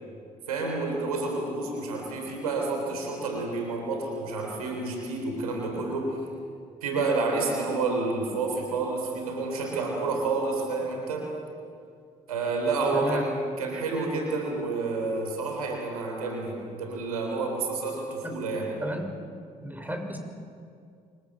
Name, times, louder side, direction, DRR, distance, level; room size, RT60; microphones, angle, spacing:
voice 1, 0.5-6.2 6.8-11.3 12.3-18.7, right 3 dB, 85° right, 2 dB, 3.9 m, -29 dB
voice 2, 12.9-13.2 18.2-18.3 18.8-19.1 19.6-20.2, equal, 10° right, 5 dB, 6.3 m, -32 dB
26.0 x 24.5 x 7.7 m, 2.3 s
hypercardioid pair, 50°, 18 cm